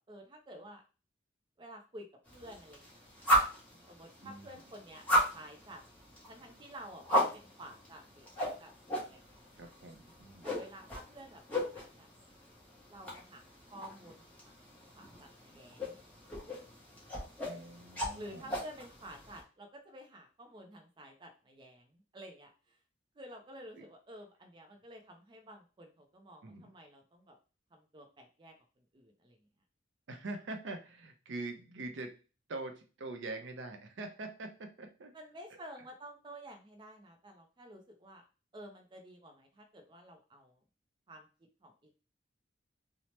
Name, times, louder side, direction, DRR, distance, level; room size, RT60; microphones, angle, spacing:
voice 1, 0.1-0.8 1.6-3.1 3.9-5.8 6.3-8.7 9.0-9.7 10.4-12.4 12.9-13.5 13.7-14.5 14.9-16.0 18.2-22.5 23.2-27.4 27.7-28.5 28.9-29.4 35.1-38.2 38.5-40.6 41.1-41.3 41.6-41.7, right 1 dB, 25° right, 3 dB, 0.4 m, -51 dB
sound 1, 2.3-19.4, equal, 10° left, 0.9 m, -37 dB
voice 2, 4.2-4.6 9.6-10.5 17.4-18.6 23.8-23.9 26.4-26.7 30.1-32.1 32.5-35.1 35.5-35.6, right 2 dB, 75° right, 5 dB, 0.5 m, -44 dB
2.8 x 2.0 x 3.1 m, 0.34 s
head